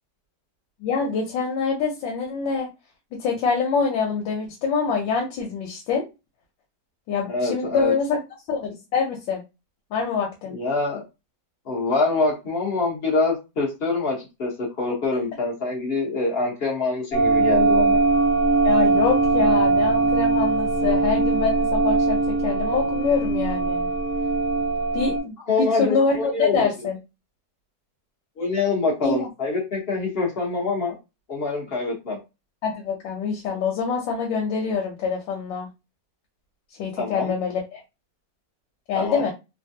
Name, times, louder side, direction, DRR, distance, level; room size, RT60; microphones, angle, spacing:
voice 1, 0.8-2.7 3.1-6.0 7.1-8.2 8.5-9.4 9.9-10.5 18.6-23.9 24.9-27.0 29.0-29.3 32.6-35.7 36.8-37.8 38.9-39.3, left 5 dB, 85° left, 1 dB, 1.4 m, -25 dB
voice 2, 7.3-7.9 10.5-11.0 11.7-18.0 25.4-26.7 28.4-30.9 31.3-32.2 37.0-37.3 38.9-39.2, left 3 dB, 40° left, -2 dB, 1.0 m, -25 dB
sound 1, 17.1-25.2, right 3 dB, 60° left, 1.5 m, -21 dB
3.3 x 2.2 x 2.7 m, 0.26 s
omnidirectional pair, 2.0 m